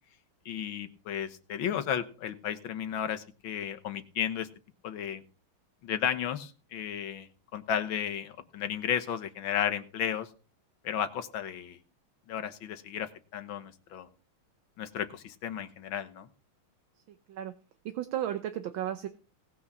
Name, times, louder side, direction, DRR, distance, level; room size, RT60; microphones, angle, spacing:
voice 1, 0.5-4.5 4.8-5.2 5.8-10.3 10.8-11.8 12.3-14.1 14.8-16.3, left 9 dB, 70° left, 9 dB, 1.9 m, -33 dB
voice 2, 17.9-19.1, right 11 dB, 70° right, 9 dB, 1.6 m, -33 dB
18.5 x 6.2 x 6.0 m, 0.36 s
omnidirectional pair, 2.3 m